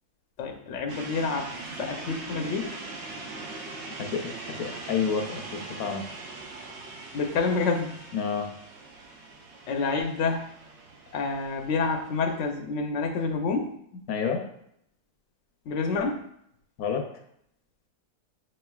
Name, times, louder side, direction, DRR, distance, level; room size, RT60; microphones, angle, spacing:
voice 1, 0.4-1.5 1.8-2.8 7.1-8.0 9.7-10.5 11.1-13.7 15.7-16.3, left 4 dB, 65° left, 3 dB, 0.9 m, -28 dB
sound 1, 0.9-12.5, right 3 dB, 60° right, 0.9 m, -41 dB
voice 2, 4.0-6.0 8.1-8.5 14.1-14.5 16.8-17.1, left 6 dB, 80° left, 3 dB, 1.1 m, -29 dB
6.3 x 3.2 x 2.3 m, 0.71 s
omnidirectional pair, 1.5 m